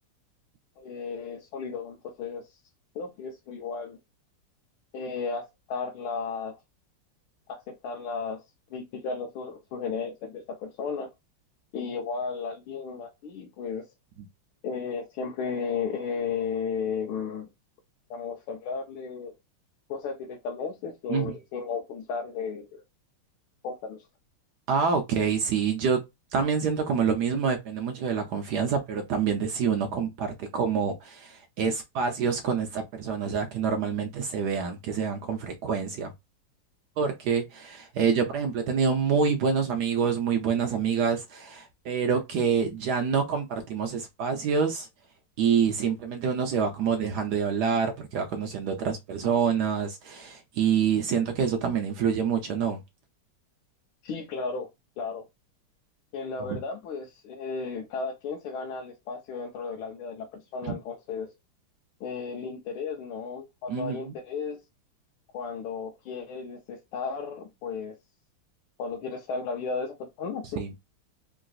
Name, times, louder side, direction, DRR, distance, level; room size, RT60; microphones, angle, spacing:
voice 1, 0.8-2.6 2.9-4.0 4.9-6.6 7.5-8.4 8.7-11.1 11.7-13.9 14.6-17.5 18.1-19.3 19.9-22.8 23.6-24.0 54.0-54.7 55.0-55.2 56.1-61.3 62.0-64.6 65.3-68.0 68.8-70.6, left 5 dB, 80° left, 1.5 m, -34 dB
voice 2, 24.7-26.0 26.3-36.1 37.0-44.9 45.4-52.8 56.4-56.6 60.6-60.8 63.7-64.1 70.6-70.7, right 6 dB, 80° right, 0.9 m, -27 dB
3.8 x 2.5 x 2.3 m
omnidirectional pair, 2.3 m